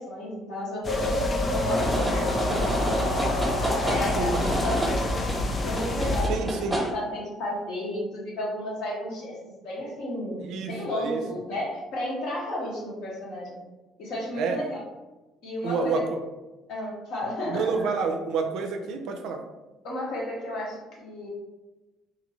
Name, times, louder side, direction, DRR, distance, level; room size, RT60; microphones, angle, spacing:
voice 1, 0.0-3.3 3.7-5.3 5.6-9.4 9.6-13.6 14.0-14.8 15.4-16.0 16.7-17.7 19.8-21.3, left 1 dB, 65° left, -4 dB, 1.0 m, -33 dB
sound 1, 0.8-6.3, left 2 dB, 40° left, 0.4 m, -29 dB
sound 2, 0.9-6.6, left 1 dB, 90° left, 0.5 m, -31 dB
sound 3, 1.8-6.9, right 1 dB, 5° right, 1.0 m, -30 dB
voice 2, 6.3-6.8 10.4-11.2 14.4-14.6 15.6-16.1 17.5-19.4, right 5 dB, 65° right, 5 dB, 0.3 m, -29 dB
2.7 x 2.5 x 3.0 m, 1.1 s
hypercardioid pair, 50°, 0 cm